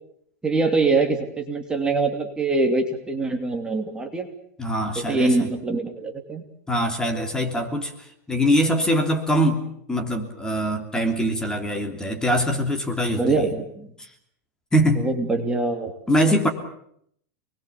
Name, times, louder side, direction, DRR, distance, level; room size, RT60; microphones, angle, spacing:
voice 1, 0.4-4.3 5.0-6.4 11.0-11.1 13.2-13.9 15.0-15.9, right 3 dB, 10° right, 3 dB, 2.9 m, -24 dB
voice 2, 4.6-5.5 6.7-13.5 14.0-14.1 14.7-15.1 16.1-16.5, equal, 10° left, 3 dB, 3.0 m, -23 dB
29.0 x 21.0 x 7.2 m, 0.69 s
supercardioid pair, 150°, 9 cm